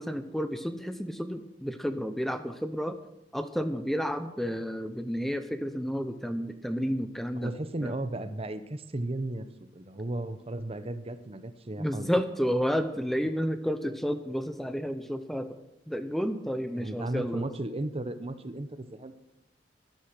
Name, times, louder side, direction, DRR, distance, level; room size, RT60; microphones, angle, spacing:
voice 1, 0.0-3.0 3.3-7.5 7.8-7.9 11.8-15.6 15.9-17.5, equal, ahead, 9 dB, 0.7 m, -31 dB
voice 2, 7.4-12.1 16.7-19.1, right 2 dB, 35° right, 12 dB, 0.8 m, -35 dB
13.0 x 12.0 x 6.1 m, 0.88 s
head